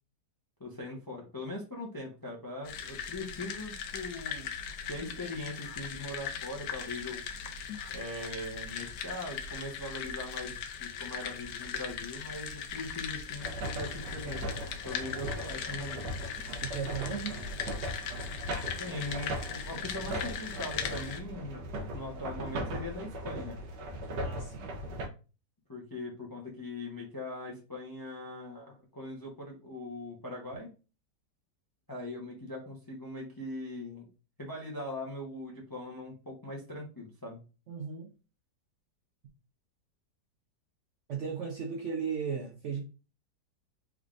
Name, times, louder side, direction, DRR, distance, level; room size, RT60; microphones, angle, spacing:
voice 1, 0.6-4.5 4.9-7.2 7.9-16.1 18.7-21.6 21.9-23.6 25.7-30.7 31.9-34.1 34.4-37.4, left 1 dB, 25° left, 0.4 m, -41 dB
sound 1, 2.6-21.2, left 7 dB, 70° left, 1.0 m, -39 dB
sound 2, 13.4-25.1, right 1 dB, 80° right, 1.4 m, -39 dB
voice 2, 16.5-17.4 24.2-24.7 37.7-38.1 41.1-42.8, right 6 dB, 65° right, 0.7 m, -36 dB
3.6 x 3.4 x 2.4 m
omnidirectional pair, 1.8 m